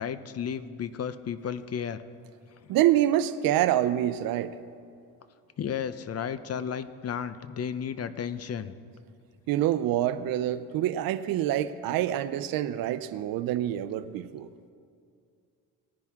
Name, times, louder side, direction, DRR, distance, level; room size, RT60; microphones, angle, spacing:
voice 1, 0.0-2.0 5.6-8.7, left 7 dB, 45° left, 13 dB, 0.7 m, -33 dB
voice 2, 2.7-4.6 9.5-14.5, right 12 dB, 80° right, 13 dB, 0.6 m, -26 dB
19.0 x 10.5 x 3.7 m, 2.4 s
cardioid pair, 85°, 35 cm